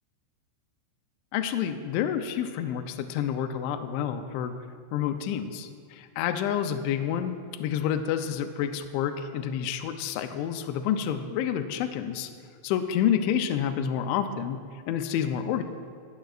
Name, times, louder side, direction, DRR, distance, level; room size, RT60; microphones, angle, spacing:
voice 1, 1.3-4.5 4.9-12.3 12.6-14.6 14.9-15.6, left 9 dB, 85° left, 7 dB, 2.7 m, -29 dB
17.0 x 10.5 x 2.4 m, 2.3 s
omnidirectional pair, 5.9 m